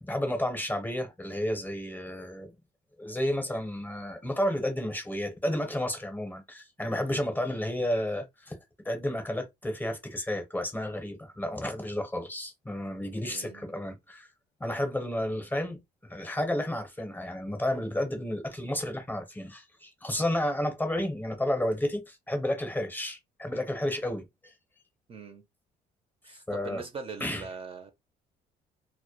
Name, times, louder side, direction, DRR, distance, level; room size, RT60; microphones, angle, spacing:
voice 1, 0.0-2.5 3.0-8.6 8.8-14.3 14.6-24.5 26.5-26.8 27.2-27.4, left 1 dB, 10° left, 0.7 m, -31 dB
voice 2, 13.2-13.6 25.1-25.5 26.2-27.9, right 5 dB, 35° right, 0.5 m, -42 dB
2.1 x 2.1 x 2.8 m
cardioid pair, 110°, 17 cm